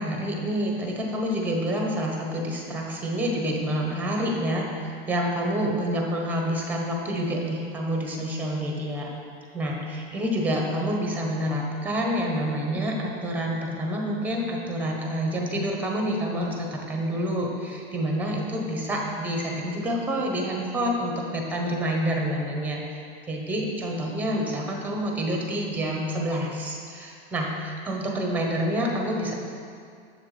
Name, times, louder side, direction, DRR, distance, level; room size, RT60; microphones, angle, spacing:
voice 1, 0.0-9.1 9.5-22.8 23.3-29.3, equal, 5° right, 0 dB, 1.0 m, -28 dB
7.2 x 7.2 x 3.3 m, 2.3 s
supercardioid pair, 135°, 30 cm